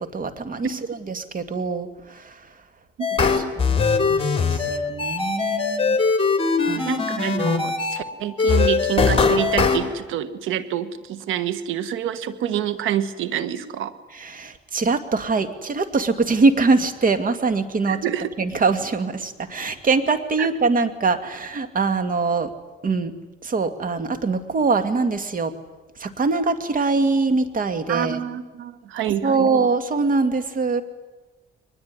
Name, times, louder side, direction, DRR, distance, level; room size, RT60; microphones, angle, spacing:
voice 1, 0.0-2.4 3.3-6.0 6.6-6.9 14.1-18.0 18.4-22.5 22.8-23.1 23.4-25.5 26.0-28.2 29.2-30.8, right 4 dB, 45° right, 10 dB, 2.3 m, -23 dB
sound 1, 3.0-8.0 8.4-9.8, left 4 dB, 30° left, 3.3 m, -21 dB
voice 2, 3.0-3.4 6.7-13.9 17.8-18.3 20.4-20.5 27.9-29.5, right 10 dB, 90° right, 13 dB, 1.4 m, -27 dB
23.0 x 20.5 x 9.7 m, 1.2 s
cardioid pair, 90°, 20 cm